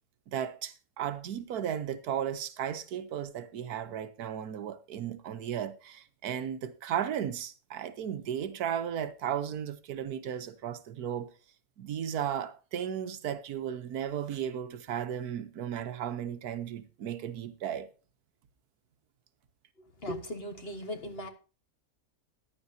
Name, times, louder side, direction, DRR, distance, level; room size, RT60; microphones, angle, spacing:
voice 1, 0.3-11.3 11.8-17.9, right 9 dB, 80° right, 1.4 m, -35 dB
voice 2, 20.0-21.3, equal, 40° left, 1.5 m, -38 dB
14.5 x 10.5 x 2.7 m
omnidirectional pair, 1.6 m